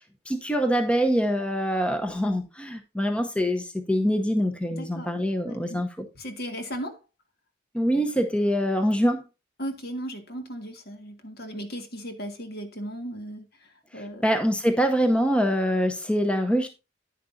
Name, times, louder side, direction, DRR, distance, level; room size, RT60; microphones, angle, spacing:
voice 1, 0.3-5.9 7.7-9.2 14.2-16.7, equal, 5° left, 0.8 m, -24 dB
voice 2, 4.7-5.1 5.4-5.8 6.2-7.0 9.6-14.2, equal, 55° left, 1.8 m, -36 dB
10.0 x 9.9 x 2.7 m
head